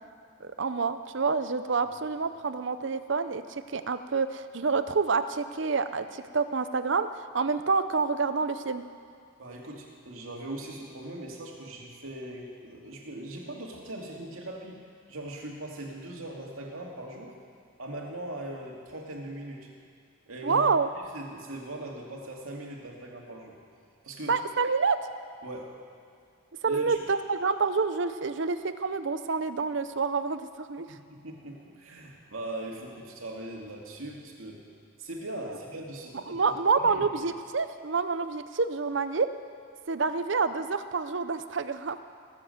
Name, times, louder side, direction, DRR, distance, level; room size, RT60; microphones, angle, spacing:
voice 1, 0.4-8.8 20.4-20.9 24.3-25.0 26.6-31.0 36.3-39.3 39.9-42.0, right 4 dB, 60° right, 11 dB, 0.6 m, -28 dB
voice 2, 9.4-14.8 15.1-17.3 17.8-19.7 20.3-23.6 24.0-24.3 25.4-25.7 26.7-27.0 30.9-34.6 35.0-37.0, right 1 dB, 80° right, -1 dB, 2.4 m, -40 dB
19.0 x 7.4 x 7.8 m, 2.4 s
head